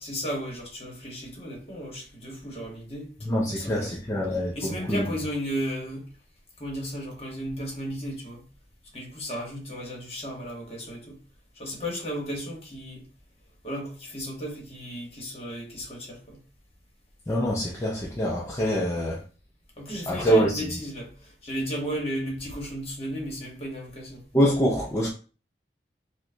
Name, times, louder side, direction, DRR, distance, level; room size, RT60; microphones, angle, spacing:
voice 1, 0.0-3.1 3.4-4.0 4.5-6.0 6.6-8.4 8.9-11.2 11.5-13.1 13.6-16.4 19.8-24.2, equal, 35° left, 1.1 m, -34 dB
voice 2, 3.3-5.1 17.3-19.2 20.1-20.6 24.3-25.1, equal, 15° left, 0.4 m, -25 dB
4.4 x 2.1 x 2.6 m
head